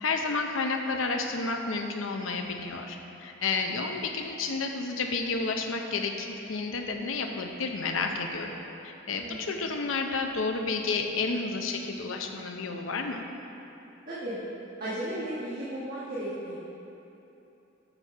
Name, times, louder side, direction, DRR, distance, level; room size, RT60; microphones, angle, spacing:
voice 1, 0.0-8.6 8.8-13.2, left 4 dB, 80° left, 4 dB, 0.7 m, -31 dB
voice 2, 9.2-9.6 14.1-14.4 14.8-16.5, right 1 dB, 45° right, -10 dB, 1.4 m, -35 dB
7.0 x 6.0 x 5.4 m, 3.0 s
head